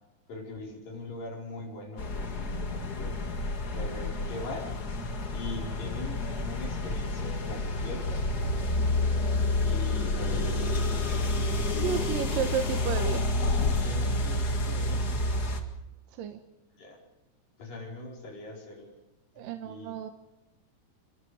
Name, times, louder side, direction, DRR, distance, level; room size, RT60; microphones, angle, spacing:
voice 1, 0.3-3.4 3.7-4.8 5.3-8.2 9.6-11.3 11.6-12.5 13.8-15.4 16.7-17.0 17.6-18.9 19.4-19.9, left 2 dB, 80° left, -1 dB, 6.4 m, -42 dB
sound 1, 2.0-15.6, left 2 dB, 35° left, 1.9 m, -29 dB
voice 2, 11.7-13.3 16.1-16.4 19.4-20.1, right 8 dB, 80° right, 7 dB, 2.8 m, -32 dB
27.5 x 23.0 x 5.0 m, 1.0 s
omnidirectional pair, 3.9 m